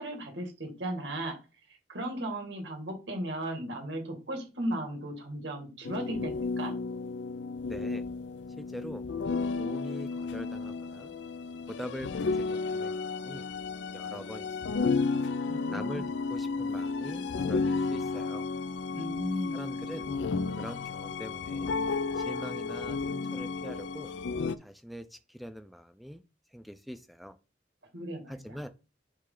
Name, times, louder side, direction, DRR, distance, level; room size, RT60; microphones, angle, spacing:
voice 1, 0.0-1.4 1.9-6.7 15.4-16.1 18.9-19.5 19.8-20.2 27.9-28.6, right 1 dB, 90° right, 2 dB, 2.2 m, -36 dB
sound 1, 5.9-24.6, left 4 dB, 85° left, 0.4 m, -33 dB
voice 2, 7.7-8.0 8.6-9.0 9.6-11.1 11.7-13.4 13.9-15.0 15.7-18.5 19.5-20.1 20.5-21.7 22.1-24.1 24.6-26.2 26.5-27.4 28.3-28.7, equal, ahead, 10 dB, 0.4 m, -43 dB
9.5 x 3.2 x 3.8 m, 0.31 s
head